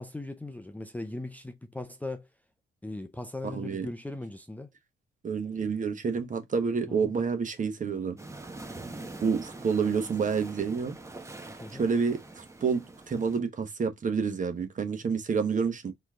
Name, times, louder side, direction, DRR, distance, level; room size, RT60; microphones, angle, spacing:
voice 1, 0.0-2.3 2.8-4.7 6.9-7.1 11.6-11.9, left 2 dB, 10° left, 0.6 m, -39 dB
voice 2, 3.4-3.9 5.2-8.2 9.2-10.9 11.7-15.9, right 5 dB, 40° right, 1.2 m, -29 dB
sound 1, 8.2-13.4, right 2 dB, 15° right, 1.0 m, -44 dB
4.6 x 3.1 x 3.6 m
cardioid pair, 90°, 20 cm